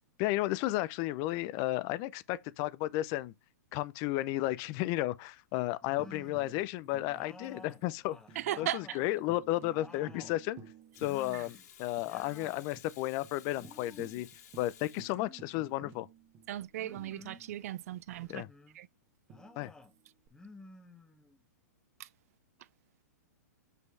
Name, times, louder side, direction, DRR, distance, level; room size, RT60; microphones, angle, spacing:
voice 1, 0.2-3.3 3.7-8.2 8.6-10.6 11.0-14.3 14.6-16.1 18.3-18.5 19.6-19.7, left 16 dB, 40° left, 0.6 m, -33 dB
sound 1, 5.8-6.6 7.1-9.1 9.5-10.4 11.0-11.7 11.9-12.7 13.5-14.3 15.1-16.0 16.8-17.5 18.2-18.8 19.3-19.9 20.3-21.4, left 2 dB, 5° left, 1.1 m, -53 dB
Tambourine, 6.0-11.7 12.0-12.1 12.4-12.9 13.2-13.3 13.6-17.8 19.3-20.3, right 6 dB, 25° right, 1.4 m, -56 dB
voice 2, 8.4-9.0 11.3-11.4 16.5-18.4 18.8-18.9 22.0-22.1, right 13 dB, 55° right, 0.5 m, -37 dB
Water tap faucet / Sink (filling or washing), 10.9-15.7 18.1-18.3, left 9 dB, 70° left, 3.0 m, -56 dB
6.2 x 5.5 x 3.3 m
hypercardioid pair, 115°, 9 cm